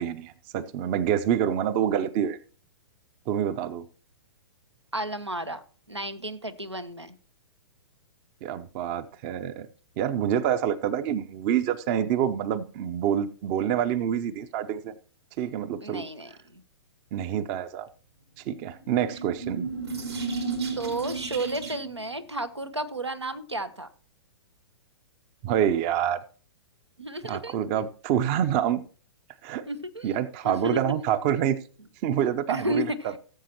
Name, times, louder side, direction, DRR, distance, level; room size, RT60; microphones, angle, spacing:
voice 1, 0.0-2.4 3.3-3.8 8.4-9.7 10.0-14.9 15.4-16.0 17.1-17.9 18.5-19.7 25.4-26.2 27.2-28.8 29.4-29.7 30.0-31.6 32.0-32.9, right 9 dB, 30° right, 14 dB, 0.6 m, -27 dB
voice 2, 4.9-5.6 5.9-7.2 15.8-16.6 20.8-23.9 27.0-27.8 29.7-30.2 30.4-30.8 32.5-33.1, right 1 dB, 90° right, 10 dB, 1.0 m, -32 dB
sound 1, 18.8-22.0, right 4 dB, 70° right, 3.1 m, -33 dB
17.5 x 7.5 x 2.9 m, 0.40 s
figure-of-eight pair, 110°, 14 cm